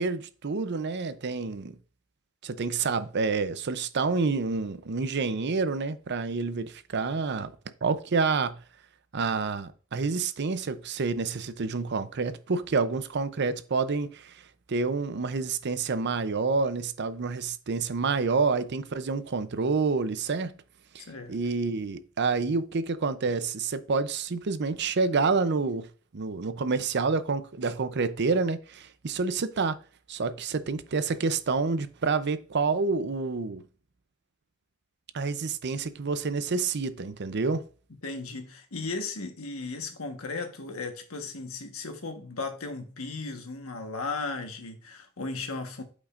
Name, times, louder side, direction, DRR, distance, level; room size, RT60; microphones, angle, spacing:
voice 1, 0.0-1.8 2.4-7.5 7.8-8.6 9.1-20.6 20.9-25.9 26.1-29.8 30.1-33.6 35.1-37.6, right 4 dB, 55° right, 0.6 m, -28 dB
voice 2, 21.1-21.4 38.0-45.8, left 3 dB, 80° left, 1.3 m, -36 dB
8.3 x 5.2 x 2.5 m
head